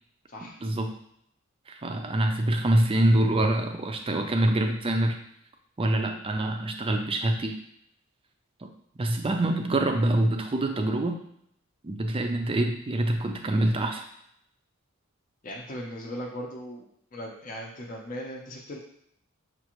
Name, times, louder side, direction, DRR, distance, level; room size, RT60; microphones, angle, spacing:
voice 1, 0.6-0.9 1.7-5.2 5.8-7.6 8.6-8.7 9.0-11.2 11.8-14.1, right 1 dB, 25° right, 5 dB, 0.4 m, -25 dB
voice 2, 15.4-16.9 17.1-18.8, equal, 40° left, -3 dB, 0.6 m, -38 dB
6.4 x 2.5 x 3.0 m, 0.71 s
head